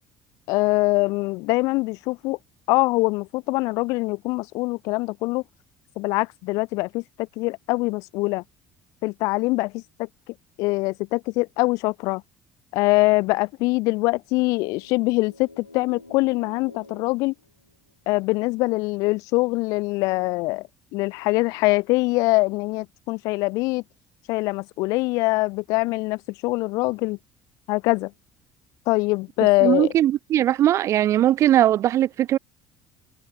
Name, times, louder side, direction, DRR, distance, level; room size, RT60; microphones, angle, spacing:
voice 1, 0.5-2.4 2.7-5.4 6.0-8.4 9.0-10.1 10.6-12.2 12.7-17.3 18.1-23.8 24.3-27.2 27.7-28.1 28.9-29.9, left 23 dB, 60° left, 1.0 m, -23 dB
sound 1, 14.3-18.1, left 2 dB, 85° left, 7.2 m, -49 dB
voice 2, 29.6-32.4, right 12 dB, 45° right, 1.2 m, -19 dB
figure-of-eight pair, 55°, 7 cm